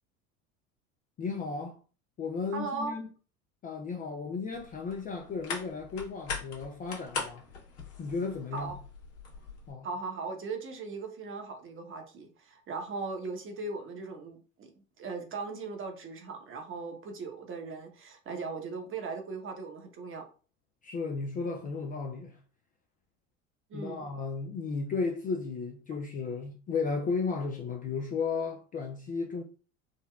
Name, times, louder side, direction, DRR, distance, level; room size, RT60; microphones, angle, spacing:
voice 1, 1.2-1.8 2.2-3.1 3.6-7.4 8.0-8.7 9.7-9.9 20.8-22.4 23.7-29.4, left 4 dB, 20° left, 0.3 m, -34 dB
voice 2, 2.5-3.0 8.5-8.8 9.8-14.7 15.0-20.3 23.7-24.1, right 4 dB, 30° right, 0.8 m, -38 dB
sound 1, 4.5-9.7, left 4 dB, 45° left, 1.1 m, -41 dB
3.7 x 2.2 x 2.3 m
hypercardioid pair, 75°, 40 cm